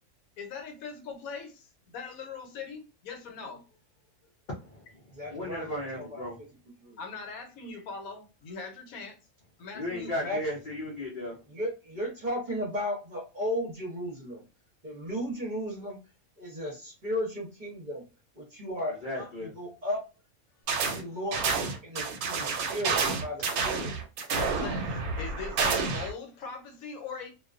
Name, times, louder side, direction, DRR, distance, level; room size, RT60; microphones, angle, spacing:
voice 1, 0.4-1.7 1.9-3.6 7.0-9.2 9.6-10.4 20.8-21.2 24.3-27.3, left 5 dB, 75° left, 1.1 m, -41 dB
voice 2, 4.5-4.8 5.3-6.4 9.7-11.4 19.0-19.5, left 1 dB, 55° left, 0.5 m, -35 dB
voice 3, 5.1-6.3 6.8-7.0 10.2-10.4 11.5-14.4 14.8-16.0 16.4-18.0 18.4-20.0 20.9-23.9, equal, 40° right, 0.7 m, -35 dB
sound 1, 20.7-21.0 21.3-26.1, right 4 dB, 85° right, 1.1 m, -29 dB
2.3 x 2.2 x 2.4 m
omnidirectional pair, 1.5 m